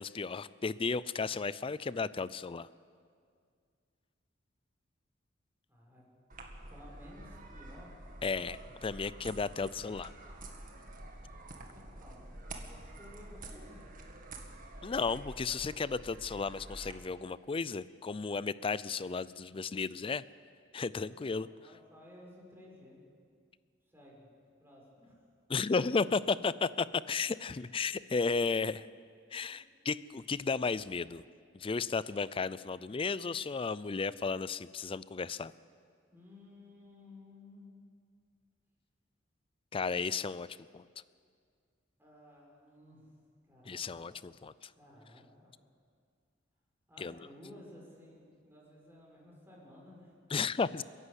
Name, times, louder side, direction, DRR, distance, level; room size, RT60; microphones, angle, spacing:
voice 1, 0.0-2.7 8.2-10.1 14.8-20.2 20.7-21.5 25.5-28.9 29.3-31.2 31.5-35.5 39.7-40.5 40.7-40.8 43.7-44.7 47.0-47.1 50.3-50.8, left 4 dB, 30° left, 18 dB, 0.4 m, -34 dB
voice 2, 5.7-6.0 6.3-8.0 11.7-14.0 20.8-23.0 23.9-24.3 24.6-25.2 36.1-37.8 42.0-43.1 43.5-44.1 44.8-45.5 46.9-50.1, left 1 dB, 10° right, -3 dB, 5.4 m, -55 dB
sound 1, 6.3-16.9, right 2 dB, 45° right, 1.9 m, -48 dB
29.5 x 11.0 x 8.2 m, 2.1 s
head